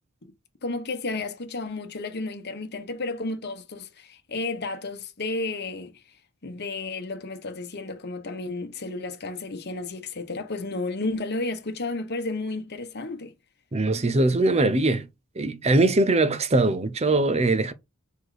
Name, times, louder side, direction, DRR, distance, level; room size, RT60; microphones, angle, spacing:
voice 1, 0.6-6.0 6.4-13.3, left 3 dB, 50° left, 1.1 m, -32 dB
voice 2, 13.7-15.1 15.4-17.7, right 2 dB, 30° right, 0.7 m, -21 dB
4.6 x 4.4 x 4.9 m
head